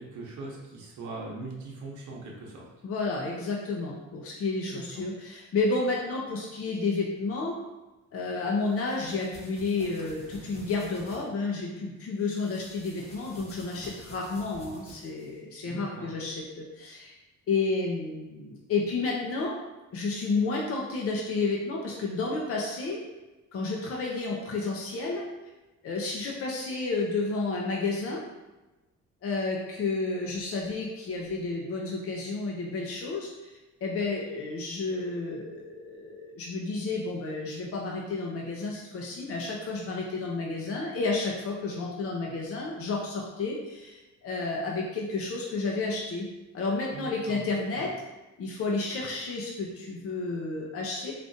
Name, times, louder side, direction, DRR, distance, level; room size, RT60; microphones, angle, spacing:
voice 1, 0.0-2.6 4.7-5.0 15.6-16.1 46.9-47.4 47.7-47.9, right 3 dB, 75° right, -2 dB, 0.8 m, -41 dB
voice 2, 2.8-7.6 8.1-17.2 17.5-19.6 19.9-23.0 23.5-25.2 25.8-28.2 29.2-33.3 33.8-46.3 46.5-47.9 48.4-51.1, left 3 dB, 50° left, -2 dB, 0.6 m, -31 dB
sound 1, 8.7-11.2 12.2-15.4, equal, 20° left, 1.0 m, -49 dB
3.5 x 2.4 x 2.6 m, 1.1 s
cardioid pair, 90°, 30 cm